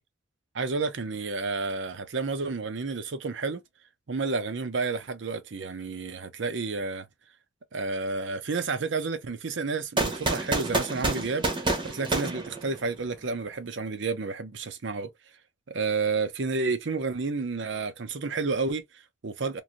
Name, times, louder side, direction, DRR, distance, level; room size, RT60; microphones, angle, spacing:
voice 1, 0.5-3.6 4.1-7.0 7.7-15.1 15.7-19.6, right 4 dB, 65° right, 0.6 m, -30 dB
sound 1, 10.0-13.1, right 2 dB, 25° right, 0.8 m, -28 dB
3.0 x 2.6 x 2.5 m
head